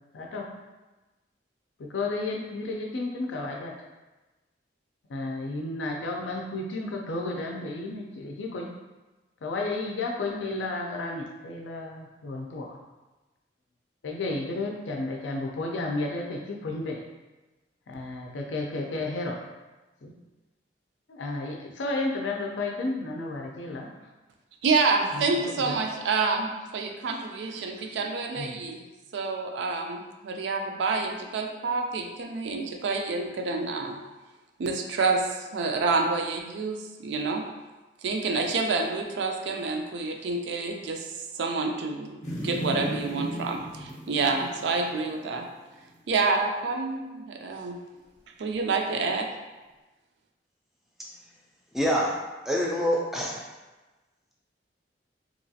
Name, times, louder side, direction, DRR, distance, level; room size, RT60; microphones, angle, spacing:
voice 1, 0.1-0.5 1.8-3.7 5.1-8.7 9.4-12.8 14.0-17.0 17.9-19.4 20.0-20.1 21.1-23.9 25.1-25.8 28.3-28.6, left 2 dB, 85° left, 1 dB, 0.4 m, -32 dB
voice 2, 24.6-28.8 29.1-34.0 34.6-37.4 38.0-41.1 41.3-45.5 46.1-47.8 48.4-49.3, right 4 dB, 75° right, 3 dB, 0.3 m, -28 dB
sound 1, 42.2-45.6 45.9-46.0, equal, 40° left, 0.6 m, -35 dB
voice 3, 51.7-52.1 52.5-53.4, equal, ahead, -3 dB, 0.4 m, -25 dB
2.9 x 2.4 x 2.7 m, 1.2 s
head